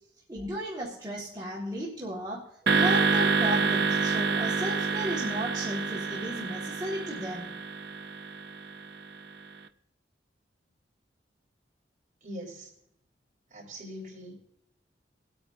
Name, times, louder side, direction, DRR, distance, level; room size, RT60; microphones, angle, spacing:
voice 1, 0.3-2.4 2.7-7.5, equal, 20° right, -7 dB, 1.7 m, -35 dB
sound 1, 2.7-9.0, right 4 dB, 60° right, 0.5 m, -27 dB
voice 2, 12.2-12.7 13.5-14.3, equal, 45° right, -3 dB, 3.9 m, -42 dB
21.5 x 8.8 x 2.6 m, 0.74 s
head